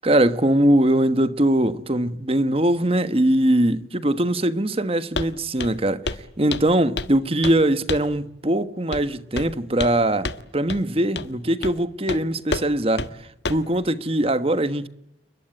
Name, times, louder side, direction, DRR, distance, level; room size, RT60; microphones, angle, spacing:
voice 1, 0.0-6.1 6.4-13.1 13.5-14.9, right 1 dB, 35° right, 1.3 m, -21 dB
Walk footsteps, 5.2-5.3 5.6-5.8 6.1-6.2 6.5-7.2 7.4-7.6 7.9-8.1 8.9-9.1 9.4-10.0 10.2-10.4 10.7-10.8 11.2-11.3 11.6-11.8 12.1-12.2 12.5-12.7 13.0-13.1 13.5-13.7, left 3 dB, 75° left, 1.5 m, -29 dB
29.5 x 21.5 x 9.0 m
head